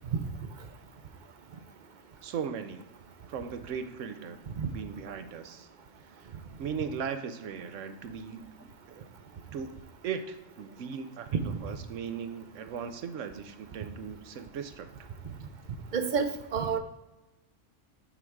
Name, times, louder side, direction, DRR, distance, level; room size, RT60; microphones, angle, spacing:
voice 1, 2.2-2.9 3.3-4.4 4.7-5.7 6.2-6.3 6.6-8.5 8.9-9.1 9.5-15.1, right 6 dB, 85° right, 9 dB, 1.0 m, -38 dB
voice 2, 15.9-16.8, right 6 dB, 50° right, 7 dB, 0.6 m, -28 dB
8.9 x 4.5 x 3.6 m, 1.0 s
omnidirectional pair, 1.3 m